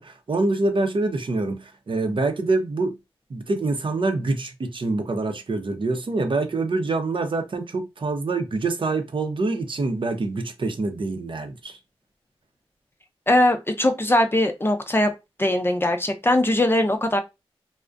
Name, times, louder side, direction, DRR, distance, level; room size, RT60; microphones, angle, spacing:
voice 1, 0.0-3.0 3.3-11.8, right 3 dB, 55° right, 0.7 m, -25 dB
voice 2, 13.3-15.1 15.4-17.2, left 1 dB, 20° left, 0.5 m, -20 dB
2.4 x 2.1 x 2.5 m
cardioid pair, 40°, 10 cm